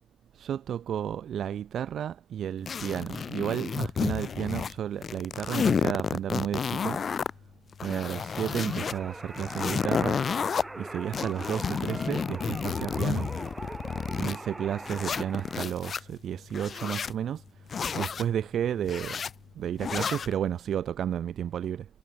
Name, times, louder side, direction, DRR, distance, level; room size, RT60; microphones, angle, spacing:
voice 1, 0.4-7.0 7.8-10.2 10.8-13.3 14.2-17.4 17.9-19.2 19.6-21.9, right 9 dB, 65° right, 1.3 m, -32 dB
sound 1, 2.7-4.7 5.0-7.3 7.7-8.9 9.3-10.6 11.1-14.4 14.8-16.0 16.5-17.1 17.7-18.2 18.8-19.3 19.8-20.3, left 6 dB, 45° left, 1.5 m, -31 dB
sound 2, 8.4-15.6, right 2 dB, 15° right, 0.8 m, -41 dB
cardioid pair, 90°, 0 cm